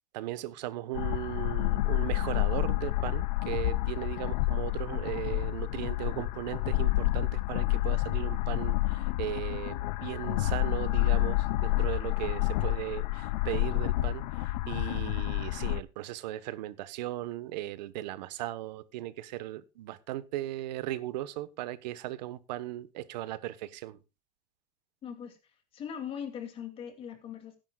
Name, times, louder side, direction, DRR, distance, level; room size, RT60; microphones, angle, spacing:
voice 1, 0.1-24.0, right 15 dB, 90° right, 1.2 m, -37 dB
sound 1, 0.9-15.8, left 17 dB, 90° left, 0.7 m, -29 dB
voice 2, 25.0-25.4 25.7-27.6, left 8 dB, 25° left, 2.6 m, -40 dB
18.5 x 10.5 x 2.4 m
supercardioid pair, 170°, 21 cm